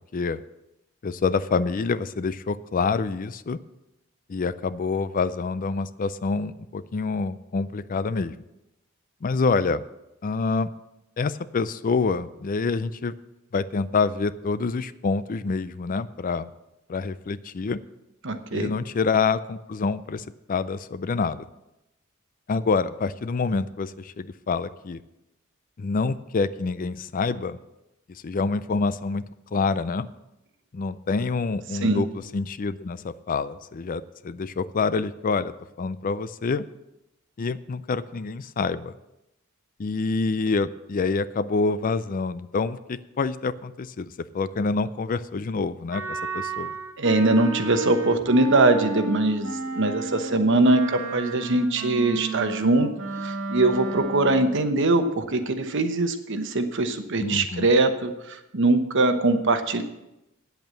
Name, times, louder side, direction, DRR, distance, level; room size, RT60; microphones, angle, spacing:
voice 1, 1.0-3.6 4.3-8.3 9.2-9.8 10.2-10.7 11.2-13.2 13.5-16.5 16.9-17.8 18.5-21.4 22.5-25.0 25.8-27.6 28.1-29.2 29.5-30.1 30.7-36.6 37.4-38.9 39.8-46.7 57.2-57.7, left 4 dB, 40° left, 15 dB, 0.4 m, -27 dB
voice 2, 18.2-18.7 31.8-32.0 47.0-52.9 53.2-59.8, right 2 dB, 60° right, 8 dB, 1.0 m, -22 dB
Wind instrument woodwind instrument, 45.9-54.5, right 3 dB, 80° right, 2.2 m, -33 dB
9.0 x 8.1 x 7.5 m, 0.92 s
head